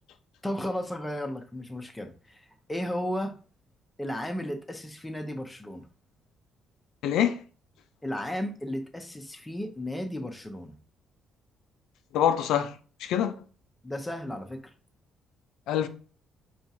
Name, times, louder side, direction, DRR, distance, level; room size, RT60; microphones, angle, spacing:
voice 1, 0.4-3.4 4.0-5.9 8.0-10.8 13.8-14.7, left 1 dB, 10° left, 0.6 m, -34 dB
voice 2, 7.0-7.4 12.1-12.7 13.0-13.3 15.7-15.9, left 10 dB, 80° left, 0.3 m, -25 dB
4.4 x 2.4 x 2.7 m
cardioid pair, 105°, 0 cm